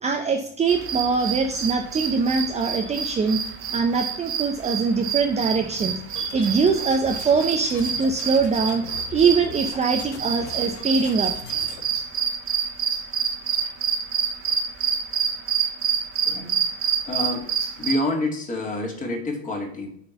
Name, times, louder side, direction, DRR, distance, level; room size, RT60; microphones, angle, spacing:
voice 1, 0.0-3.4 3.7-11.3, right 5 dB, 20° right, 4 dB, 0.7 m, -23 dB
sound 1, 0.7-17.9, right 7 dB, 40° right, 1.4 m, -27 dB
sound 2, 6.1-11.8, left 5 dB, 90° left, 1.3 m, -40 dB
voice 2, 17.1-17.5 17.8-19.9, left 2 dB, 25° left, 1 dB, 2.3 m, -27 dB
6.9 x 3.9 x 6.0 m, 0.63 s
hypercardioid pair, 100°, 33 cm